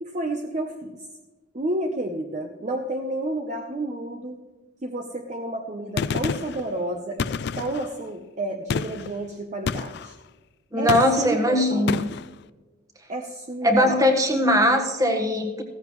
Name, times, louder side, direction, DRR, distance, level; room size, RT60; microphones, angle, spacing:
voice 1, 0.0-1.0 1.5-4.4 4.8-10.2 10.8-10.9 11.2-11.9 13.1-14.1, right 1 dB, 35° right, 3 dB, 0.8 m, -31 dB
Gunshot gunfire, 6.0-6.6 7.2-7.9 8.7-9.1 9.7-10.1 10.9-11.4 11.9-12.3, left 5 dB, 55° left, 0.4 m, -28 dB
voice 2, 10.7-12.1 13.6-15.6, equal, 15° right, 4 dB, 1.4 m, -20 dB
15.5 x 14.0 x 3.2 m, 1.3 s
head